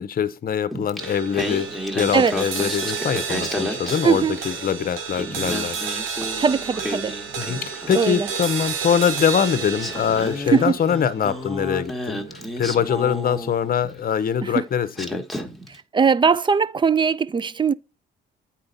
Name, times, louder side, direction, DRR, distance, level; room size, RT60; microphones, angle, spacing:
voice 1, 0.0-5.8 7.4-15.2, left 8 dB, 45° left, 0.8 m, -23 dB
Singing, 0.7-4.7 5.0-8.2 9.2-9.3 9.8-14.0 14.6-14.7 14.9-15.8, left 1 dB, ahead, 1.3 m, -32 dB
sound 1, 1.0-13.5, right 6 dB, 85° right, 1.2 m, -32 dB
voice 2, 4.0-4.4 6.4-7.2 7.9-8.3 10.5-10.7 14.6-14.7 15.9-17.7, right 6 dB, 25° right, 0.4 m, -19 dB
8.7 x 4.4 x 4.0 m
cardioid pair, 90°, 20 cm